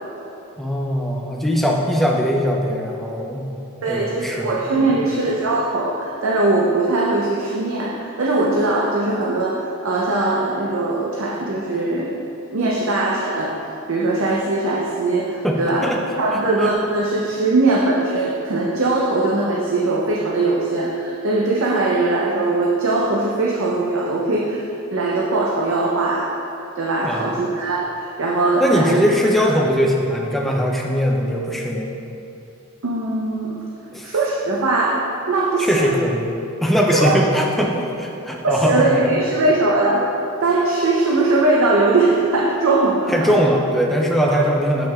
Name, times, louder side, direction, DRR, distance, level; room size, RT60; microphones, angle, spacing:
voice 1, 0.6-3.5 3.9-4.6 15.4-16.0 16.3-16.7 27.0-27.3 28.6-31.9 33.9-34.1 35.6-36.3 36.6-39.1 43.1-44.9, equal, ahead, -1 dB, 0.4 m, -20 dB
voice 2, 3.8-12.2 12.5-13.5 13.9-15.8 16.2-24.6 24.9-26.3 26.8-29.0 29.4-29.6 32.8-33.6 34.0-36.0 36.9-37.2 38.4-40.0 40.4-43.3 44.3-44.4, right 2 dB, 70° right, -3 dB, 0.5 m, -20 dB
7.3 x 5.8 x 2.3 m, 2.8 s
head